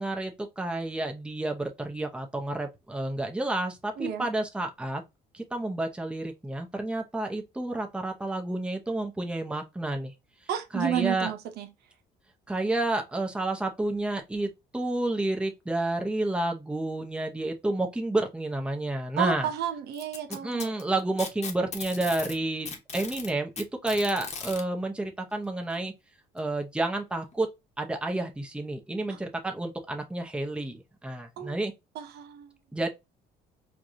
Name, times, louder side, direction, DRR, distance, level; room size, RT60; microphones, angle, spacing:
voice 1, 0.0-5.0 5.3-10.1 10.7-11.3 12.5-19.5 20.3-25.9 26.3-27.5 27.8-31.7 32.7-32.9, right 2 dB, 5° right, 0.8 m, -30 dB
voice 2, 10.5-11.7 19.2-20.7 29.1-29.2 31.4-31.5 32.0-32.5, right 10 dB, 75° right, 0.7 m, -31 dB
Packing tape duct tape, 19.9-22.4 22.7-24.6 25.7-25.8 26.4-26.5 27.3-27.4, left 5 dB, 40° left, 1.0 m, -38 dB
4.6 x 2.4 x 2.7 m
cardioid pair, 110°, 17 cm